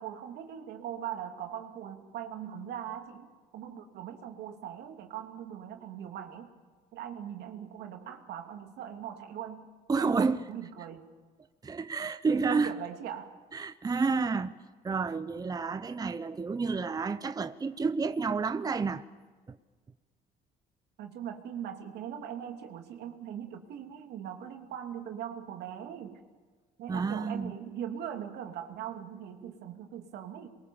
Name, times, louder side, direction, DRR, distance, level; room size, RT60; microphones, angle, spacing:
voice 1, 0.0-3.3 3.5-6.5 6.9-9.7 10.0-11.0 12.6-13.4 21.0-26.2 26.8-30.5, right 9 dB, 75° right, 3.0 m, -40 dB
voice 2, 9.9-10.4 11.6-12.8 13.5-14.5 14.8-19.1 19.5-19.6 26.9-27.5, right 4 dB, 20° right, 0.9 m, -30 dB
27.5 x 22.5 x 7.3 m
cardioid pair, 110°, 17 cm